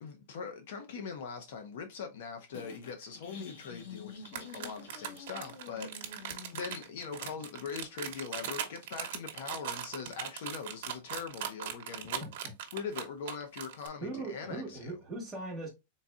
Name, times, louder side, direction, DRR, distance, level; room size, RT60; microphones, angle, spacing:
voice 1, 0.0-12.2 12.7-15.0, left 6 dB, 55° left, 0.7 m, -42 dB
sound 1, 2.5-7.5, left 5 dB, 80° left, 1.4 m, -49 dB
sound 2, 4.2-13.9, right 9 dB, 50° right, 0.9 m, -39 dB
voice 2, 14.0-15.7, right 2 dB, 5° right, 1.6 m, -39 dB
3.9 x 3.9 x 2.4 m
supercardioid pair, 180°, 0 cm